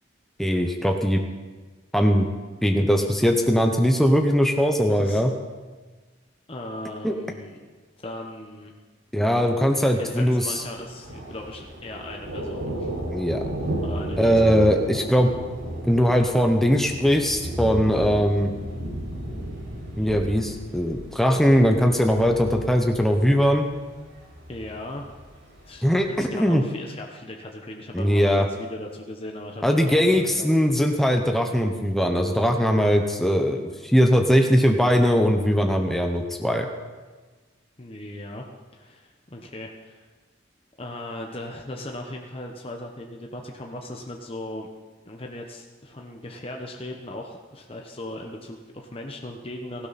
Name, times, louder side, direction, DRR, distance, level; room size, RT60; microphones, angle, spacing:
voice 1, 0.4-1.2 1.9-2.3 2.6-5.3 7.0-7.2 9.1-10.6 13.1-13.4 14.2-15.3 15.8-18.5 20.0-23.7 25.8-26.6 27.9-28.5 29.6-36.7, equal, ahead, 3 dB, 0.9 m, -20 dB
voice 2, 4.9-5.2 6.5-7.6 8.0-8.7 9.8-12.9 13.8-14.6 24.5-25.0 25.7-30.5 37.8-38.4 38.7-40.1 40.8-44.7 45.1-49.9, left 1 dB, 30° left, 1 dB, 1.0 m, -38 dB
Thunder, 10.6-26.2, right 1 dB, 80° right, 5.9 m, -34 dB
17.5 x 15.5 x 4.2 m, 1.4 s
head